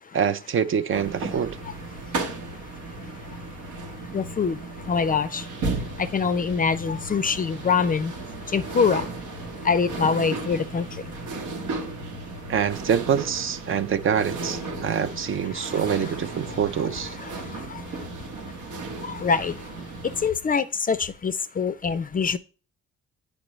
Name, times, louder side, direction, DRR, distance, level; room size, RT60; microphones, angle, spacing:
voice 1, 0.1-1.5 12.5-17.2, right 8 dB, 45° right, 0.4 m, -25 dB
sound 1, 0.9-20.3, right 3 dB, 80° right, 1.1 m, -35 dB
voice 2, 4.1-4.6 4.9-5.4 6.0-8.1 8.5-9.1 9.6-10.9 15.5-15.8 16.9-17.3 17.7-17.8 19.0-19.6 20.2-22.4, left 5 dB, 30° left, 0.4 m, -24 dB
8.5 x 5.3 x 3.0 m
cardioid pair, 90°, 30 cm